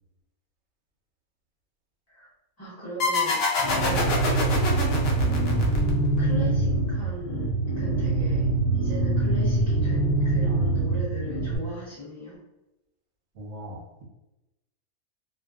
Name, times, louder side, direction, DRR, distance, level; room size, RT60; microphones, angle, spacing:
voice 1, 2.6-4.3 5.2-5.6 6.2-12.5, equal, 20° left, -10 dB, 0.4 m, -38 dB
sound 1, 3.0-6.3, left 3 dB, 70° left, 0.6 m, -26 dB
sound 2, 3.6-11.6, right 2 dB, 85° left, 1.1 m, -24 dB
voice 2, 10.4-11.0 13.3-14.0, right 1 dB, 60° right, -1 dB, 0.8 m, -40 dB
2.5 x 2.2 x 2.3 m, 0.96 s
omnidirectional pair, 1.5 m